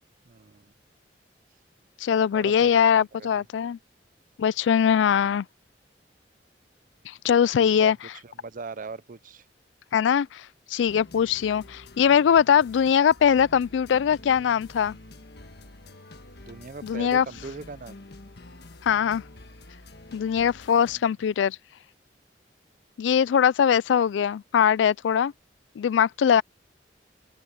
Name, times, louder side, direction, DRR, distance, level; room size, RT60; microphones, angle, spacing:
voice 1, 0.2-0.7 2.3-3.4 5.1-5.4 7.6-7.9 8.2-9.5 11.2-11.3 16.4-17.9 20.7-21.1, right 4 dB, 50° right, 0.6 m, -41 dB
voice 2, 2.0-3.8 4.4-5.5 7.1-8.0 9.9-15.0 16.8-17.3 18.8-19.2 20.1-21.6 23.0-25.3 25.8-26.4, left 8 dB, 90° left, 0.3 m, -21 dB
sound 1, 10.9-21.0, left 2 dB, 65° left, 1.5 m, -47 dB
open air
head